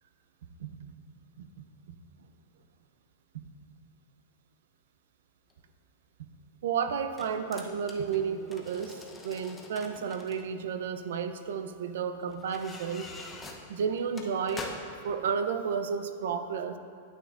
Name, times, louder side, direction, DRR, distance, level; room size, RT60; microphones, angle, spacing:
voice 1, 0.6-0.9 1.4-1.5 1.9-2.0 6.6-13.1 13.7-14.7 15.0-16.8, right 6 dB, 75° right, 9 dB, 0.5 m, -32 dB
sound 1, 5.5-5.6 6.9-10.4 11.4-11.5 12.3-15.0 15.5-15.6, left 3 dB, 10° left, 0.7 m, -45 dB
9.3 x 8.9 x 2.5 m, 2.3 s
supercardioid pair, 145°, 0 cm